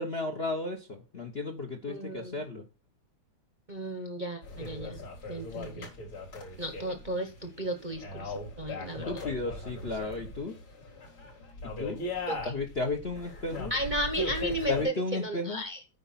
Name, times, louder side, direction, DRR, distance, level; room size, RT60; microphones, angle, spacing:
voice 1, 0.0-2.6 9.1-10.6 11.8-12.0 12.4-13.7 14.7-15.6, left 2 dB, 40° left, 0.9 m, -34 dB
voice 2, 1.9-2.4 3.7-5.0 5.3-5.9 6.6-9.2 12.3-12.5 13.7-15.8, right 1 dB, 30° right, 1.0 m, -34 dB
sound 1, 4.4-14.8, left 2 dB, 65° left, 4.4 m, -39 dB
9.2 x 5.5 x 5.7 m
omnidirectional pair, 2.4 m